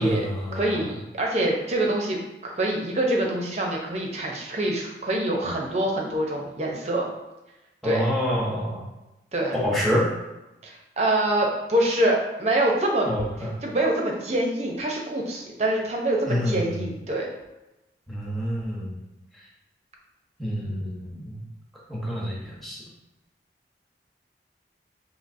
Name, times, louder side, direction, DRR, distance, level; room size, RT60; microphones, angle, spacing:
voice 1, 0.0-0.8 7.8-8.8 9.5-10.1 13.0-13.5 16.3-16.8 18.1-18.9 20.4-21.4 21.9-22.8, equal, ahead, -6 dB, 0.9 m, -27 dB
voice 2, 0.5-2.2 2.4-7.1 7.8-8.1 9.3-9.6 10.6-13.1 13.6-17.3, right 1 dB, 40° right, -1 dB, 0.6 m, -25 dB
5.5 x 2.8 x 2.6 m, 0.98 s
head